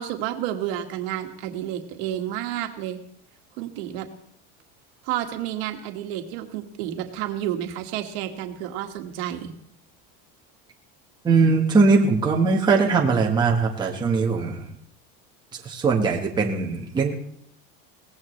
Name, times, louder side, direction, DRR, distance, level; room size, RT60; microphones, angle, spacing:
voice 1, 0.0-3.0 3.6-4.1 5.0-9.5, right 12 dB, 75° right, 4 dB, 1.9 m, -30 dB
voice 2, 11.2-14.7 15.5-17.2, right 4 dB, 15° right, -1 dB, 1.4 m, -21 dB
22.0 x 17.5 x 3.3 m, 0.68 s
cardioid pair, 175°, 32 cm